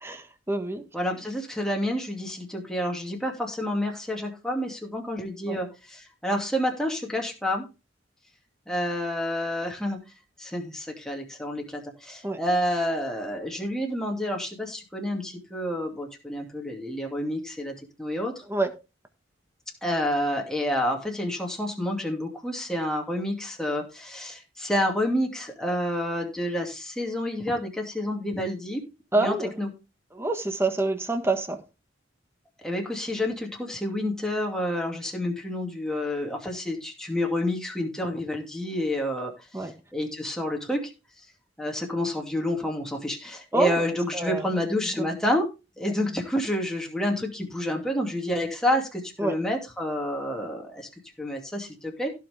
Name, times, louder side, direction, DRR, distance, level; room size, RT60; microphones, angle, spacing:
voice 1, 0.0-0.8 5.5-5.6 12.2-12.4 18.5-18.7 29.1-29.5 30.1-31.6 39.5-39.7 43.5-43.8 44.1-44.5 45.0-45.1 49.2-49.3, right 2 dB, 15° right, 1.5 m, -27 dB
voice 2, 0.9-7.7 8.7-10.0 10.4-18.3 19.8-28.8 29.1-29.7 32.6-39.3 39.6-40.9 41.6-45.5 45.8-50.9 51.2-52.1, left 1 dB, 5° left, 2.5 m, -29 dB
16.5 x 5.8 x 3.4 m
head